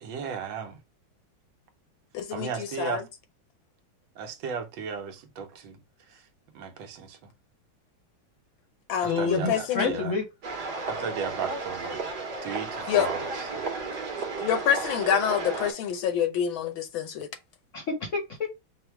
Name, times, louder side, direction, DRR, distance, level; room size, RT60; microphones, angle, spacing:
voice 1, 0.0-0.8 2.3-3.0 4.2-5.7 6.5-7.2 9.2-10.1 10.9-12.0 12.4-13.3, right 6 dB, 75° right, 1.5 m, -35 dB
voice 2, 2.1-3.1 8.9-10.0 12.9-13.1 14.4-17.3, left 9 dB, 75° left, 1.5 m, -27 dB
voice 3, 9.0-10.2 17.7-18.5, left 3 dB, 50° left, 1.0 m, -29 dB
sound 1, 10.4-15.7, right 3 dB, 60° right, 1.5 m, -33 dB
5.1 x 2.1 x 4.5 m
omnidirectional pair, 2.2 m